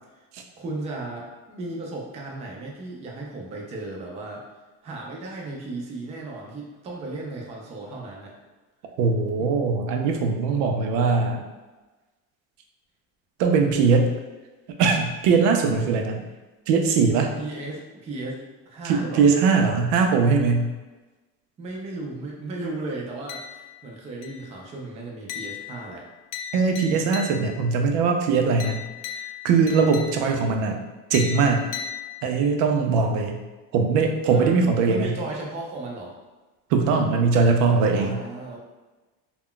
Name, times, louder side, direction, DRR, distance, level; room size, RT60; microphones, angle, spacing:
voice 1, 0.6-4.4 4.8-8.3 9.4-9.5 17.4-19.3 21.6-26.0 29.7-29.9 34.3-34.5 34.9-36.1 38.0-38.6, right 2 dB, 20° right, -2 dB, 0.3 m, -35 dB
voice 2, 9.0-11.4 13.4-14.1 14.8-16.2 16.7-17.3 18.8-20.7 26.5-28.8 29.4-30.8 31.1-31.6 32.2-33.4 33.7-35.1 36.7-38.2, right 4 dB, 90° right, 3 dB, 0.5 m, -21 dB
sound 1, 23.3-23.9 24.2-24.6 25.3-27.7 28.6-30.5 31.1-32.6, left 9 dB, 85° left, 0.5 m, -37 dB
2.3 x 2.1 x 3.6 m, 1.2 s
cardioid pair, 160°, 35 cm